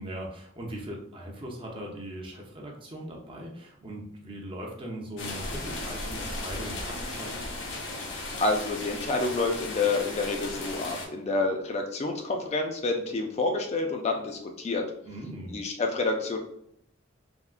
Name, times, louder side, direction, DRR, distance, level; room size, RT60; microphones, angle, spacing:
voice 1, 0.0-7.3 15.0-15.6, right 1 dB, 30° right, 0 dB, 0.6 m, -39 dB
sound 1, 5.2-11.1, left 2 dB, 70° left, 0.7 m, -36 dB
voice 2, 8.4-14.9 15.5-16.4, left 3 dB, 35° left, 3 dB, 0.4 m, -28 dB
3.5 x 2.2 x 2.4 m, 0.71 s
head